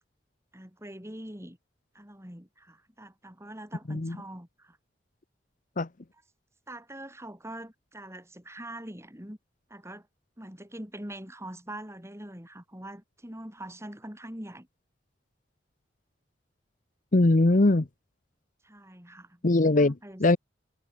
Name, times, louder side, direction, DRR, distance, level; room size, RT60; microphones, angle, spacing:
voice 1, 0.5-1.6 1.9-4.8 6.7-9.4 9.7-10.1 10.4-14.7 18.6-19.4 19.7-20.2, right 1 dB, 15° right, 7.7 m, -43 dB
voice 2, 17.1-17.9 19.4-19.9 20.2-20.4, left 2 dB, 45° left, 0.9 m, -21 dB
head